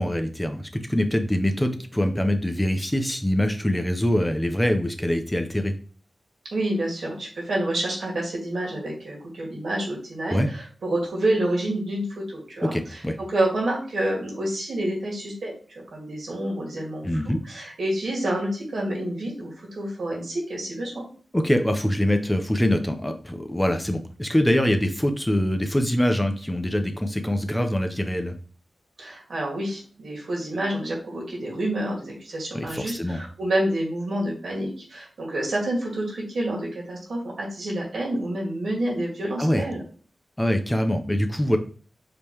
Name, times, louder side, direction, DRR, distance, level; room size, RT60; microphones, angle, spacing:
voice 1, 0.0-5.7 10.3-10.5 12.6-13.2 17.0-17.4 21.3-28.3 32.5-33.2 39.4-39.7 40.4-41.6, left 1 dB, 10° left, 6 dB, 0.8 m, -24 dB
voice 2, 6.5-21.0 29.0-39.8, right 1 dB, 80° right, -3 dB, 2.2 m, -28 dB
5.2 x 3.2 x 3.1 m, 0.40 s
cardioid pair, 40°, 0 cm